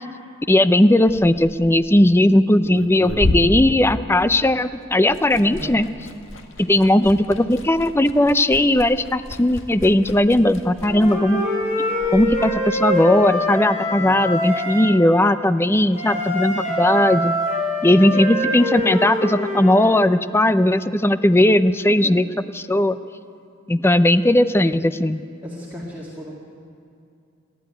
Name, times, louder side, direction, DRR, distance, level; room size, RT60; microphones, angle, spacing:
voice 1, 0.5-5.9 6.6-11.4 12.1-17.3 17.8-22.2 22.5-23.0 23.7-25.2, left 1 dB, 10° left, 13 dB, 0.5 m, -17 dB
Liquid, 0.9-4.6 4.9-12.5, left 1 dB, 70° left, 1.8 m, -31 dB
voice 2, 5.4-5.8 14.0-14.2 17.8-18.2 21.9-22.3 23.9-24.2 25.4-26.3, equal, 10° right, -4 dB, 2.0 m, -36 dB
Wind instrument woodwind instrument, 10.8-14.9 15.9-19.9, left 1 dB, 35° left, 6.0 m, -24 dB
28.0 x 11.5 x 9.1 m, 2.5 s
head